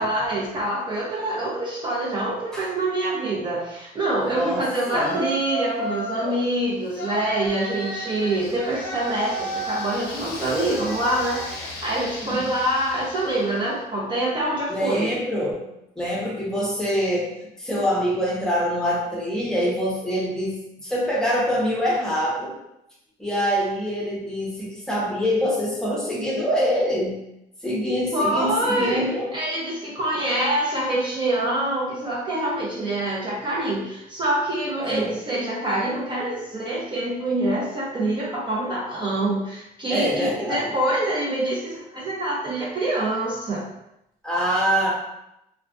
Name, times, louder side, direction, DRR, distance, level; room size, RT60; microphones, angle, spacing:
voice 1, 0.0-15.1 28.1-43.6, right 1 dB, 30° right, -6 dB, 0.6 m, -25 dB
voice 2, 4.3-4.6 4.9-5.2 12.2-12.5 14.7-15.6 16.0-22.5 23.2-27.2 27.6-29.3 34.9-35.2 39.9-40.6 44.2-44.9, equal, 5° left, -6 dB, 0.8 m, -25 dB
Yell, 4.8-6.4 6.9-13.7, equal, 70° left, 0.6 m, -32 dB
2.4 x 2.2 x 2.4 m, 0.85 s
cardioid pair, 110°, 17 cm